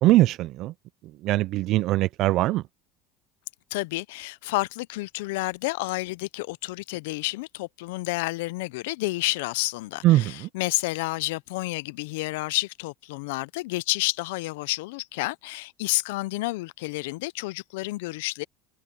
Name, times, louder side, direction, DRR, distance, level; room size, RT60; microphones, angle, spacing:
voice 1, 0.0-0.7 1.2-2.6 10.0-10.5, right 16 dB, 40° right, 0.3 m, -21 dB
voice 2, 3.7-18.5, left 21 dB, 85° left, 0.4 m, -30 dB
cardioid pair, 170°, 0 cm